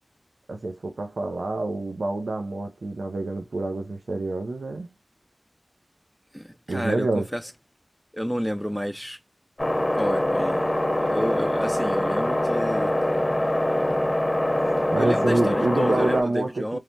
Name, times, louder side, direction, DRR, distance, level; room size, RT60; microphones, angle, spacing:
voice 1, 0.5-4.9 6.7-7.3 14.9-16.8, right 2 dB, 85° right, 0.4 m, -27 dB
voice 2, 6.3-7.4 8.1-9.2 9.9-10.7 11.0-12.9 15.0-16.8, equal, ahead, 0.4 m, -30 dB
sound 1, 9.6-16.2, left 1 dB, 30° left, 0.8 m, -24 dB
3.1 x 2.1 x 2.6 m
wide cardioid pair, 55°, 0 cm